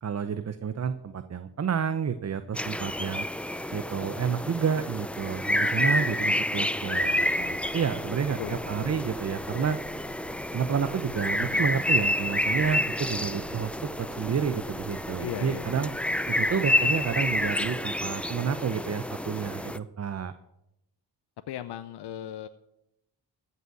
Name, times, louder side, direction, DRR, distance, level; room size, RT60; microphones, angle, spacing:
voice 1, 0.0-3.3 3.7-9.8 10.5-15.9 16.3-20.3, right 7 dB, 40° right, 11 dB, 0.7 m, -30 dB
sound 1, 2.5-19.8, left 1 dB, 5° left, 0.4 m, -29 dB
sound 2, 7.2-17.6, right 8 dB, 65° right, 1.0 m, -51 dB
voice 2, 8.4-8.9 11.3-11.6 15.2-15.9 21.5-22.5, left 11 dB, 75° left, 11 dB, 0.6 m, -37 dB
14.5 x 5.6 x 7.7 m, 0.86 s
cardioid pair, 75°, 41 cm